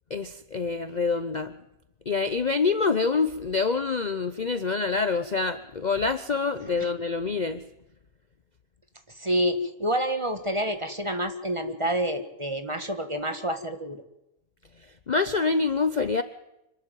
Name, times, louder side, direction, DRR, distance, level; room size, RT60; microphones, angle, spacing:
voice 1, 0.1-1.5 2.1-7.6 15.1-16.2, left 4 dB, 40° left, 11 dB, 0.8 m, -26 dB
voice 2, 9.2-14.0, equal, 20° right, 8 dB, 1.6 m, -28 dB
26.0 x 12.5 x 9.2 m, 0.89 s
omnidirectional pair, 1.5 m